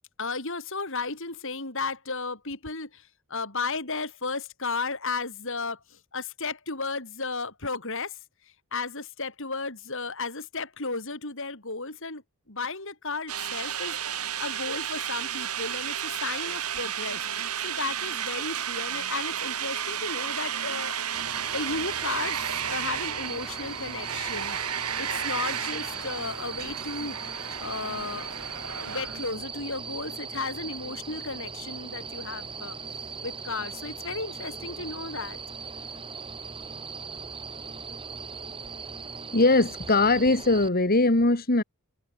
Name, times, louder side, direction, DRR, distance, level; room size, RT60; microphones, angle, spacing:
voice 1, 0.2-3.0 3.3-5.8 6.1-8.1 8.7-12.2 12.5-14.0 14.4-21.0 21.5-24.6 25.0-27.2 27.6-32.8 33.2-35.4, left 4 dB, 60° left, 6.0 m, -34 dB
sound 1, 13.3-29.3, right 9 dB, 90° right, 7.0 m, -32 dB
sound 2, 21.1-40.7, right 5 dB, 25° right, 2.2 m, -39 dB
voice 2, 39.3-41.6, left 2 dB, 40° left, 1.8 m, -21 dB
head